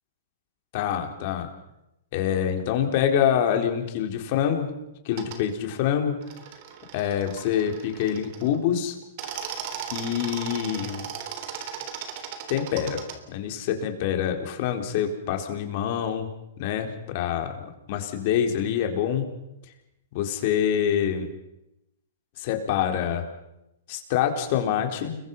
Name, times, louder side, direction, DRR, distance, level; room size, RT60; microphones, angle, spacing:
voice 1, 0.7-1.5 2.1-4.7 5.0-6.1 6.9-8.9 9.9-11.0 12.5-13.0 13.3-16.3 16.6-19.3 20.1-21.3 22.4-23.2 23.9-25.2, left 9 dB, 50° left, 4 dB, 4.1 m, -26 dB
sound 1, 5.1-5.4 6.2-8.6 9.0-13.2, right 8 dB, 45° right, 3.5 m, -37 dB
29.5 x 22.5 x 5.6 m, 0.87 s
hypercardioid pair, 140°, 0 cm